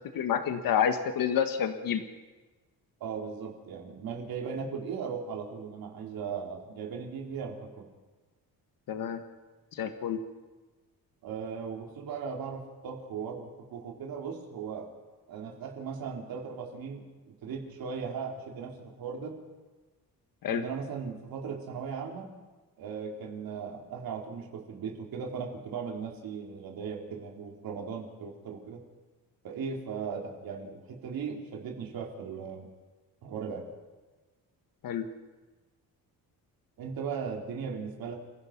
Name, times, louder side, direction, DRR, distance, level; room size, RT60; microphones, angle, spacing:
voice 1, 0.1-2.0 8.9-9.2 9.7-10.2 20.4-20.6 34.8-35.1, left 8 dB, 60° left, 8 dB, 1.4 m, -28 dB
voice 2, 3.0-7.9 11.2-14.9 15.3-19.4 20.5-22.3 22.8-28.8 29.4-32.7 33.2-33.7 36.8-38.2, right 6 dB, 65° right, 1 dB, 3.6 m, -38 dB
29.0 x 15.5 x 6.0 m, 1.3 s
cardioid pair, 165°, 38 cm